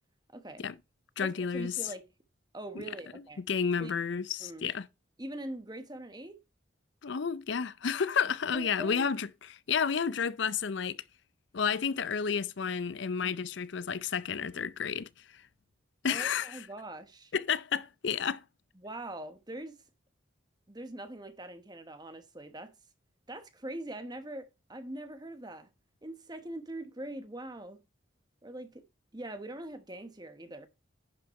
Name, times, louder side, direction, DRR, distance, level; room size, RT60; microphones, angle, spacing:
voice 1, 0.3-0.6 1.2-2.1 2.5-3.4 3.8-3.9 4.4-4.7 5.2-6.4 8.5-9.1 16.1-17.3 18.8-19.8 20.7-22.7 23.3-25.7 26.0-27.8 28.4-28.8 29.1-30.7, right 1 dB, 20° right, 1.1 m, -42 dB
voice 2, 1.2-1.8 3.4-4.9 7.0-11.0 11.5-15.4 16.0-16.7 17.3-18.4, left 6 dB, 60° left, 0.5 m, -31 dB
10.5 x 5.7 x 4.2 m
head